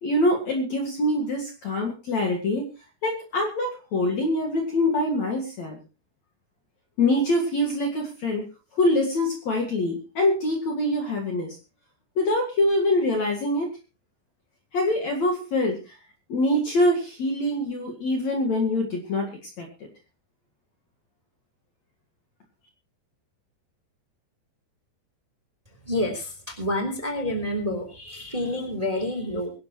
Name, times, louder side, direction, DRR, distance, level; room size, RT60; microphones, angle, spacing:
voice 1, 0.0-2.7 3.0-5.8 7.0-8.5 8.7-11.6 12.2-13.7 14.7-16.0 16.3-19.3 19.6-19.7, left 1 dB, 50° left, 2 dB, 2.7 m, -24 dB
voice 2, 25.9-29.5, left 1 dB, 10° right, 5 dB, 2.8 m, -28 dB
23.5 x 11.5 x 3.1 m, 0.32 s
omnidirectional pair, 5.0 m